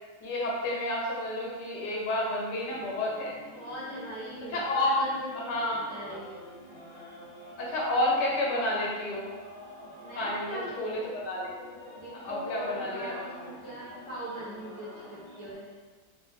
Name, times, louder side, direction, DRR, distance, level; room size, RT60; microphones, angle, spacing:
voice 1, 0.2-3.3 4.5-5.0 5.3-6.1 7.6-9.3 10.1-11.5 12.2-13.3, left 1 dB, 85° left, -3 dB, 1.4 m, -30 dB
sound 1, 2.7-15.5, left 1 dB, 50° left, 0.8 m, -48 dB
voice 2, 3.4-6.4 10.0-10.7 12.0-15.8, right 1 dB, 20° left, -11 dB, 1.1 m, -40 dB
3.9 x 2.1 x 3.1 m, 1.3 s
omnidirectional pair, 1.8 m